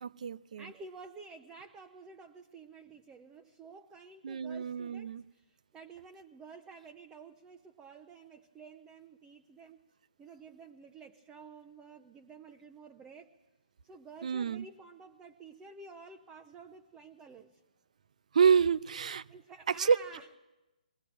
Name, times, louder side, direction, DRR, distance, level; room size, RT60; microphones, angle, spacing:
voice 1, 0.0-0.6 4.2-5.2 14.2-14.7 18.3-19.2 19.8-20.0, right 6 dB, 60° right, 18 dB, 0.6 m, -28 dB
voice 2, 0.6-9.8 10.2-13.4 13.8-17.6 19.3-20.3, right 4 dB, 15° right, 5 dB, 0.8 m, -51 dB
21.5 x 16.0 x 8.8 m, 1.0 s
figure-of-eight pair, 140°, 4 cm